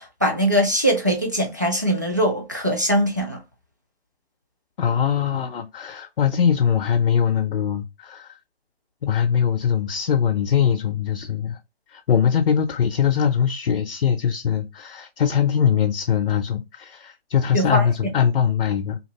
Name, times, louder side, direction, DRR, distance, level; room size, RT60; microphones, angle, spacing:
voice 1, 0.0-3.4 17.5-17.8, equal, 20° right, 0.3 m, -21 dB
voice 2, 4.8-8.4 9.0-11.6 11.9-19.0, left 8 dB, 60° left, 0.5 m, -22 dB
2.8 x 2.6 x 3.0 m
figure-of-eight pair, 145°, 31 cm